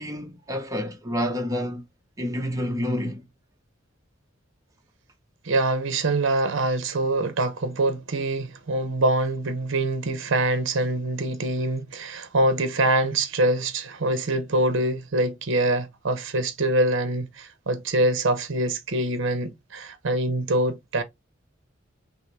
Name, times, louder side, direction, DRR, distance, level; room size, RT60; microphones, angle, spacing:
voice 1, 0.0-1.8 2.2-3.2, equal, 15° right, 0.8 m, -28 dB
voice 2, 5.4-21.0, right 2 dB, 65° right, 0.7 m, -24 dB
5.5 x 2.0 x 3.2 m
head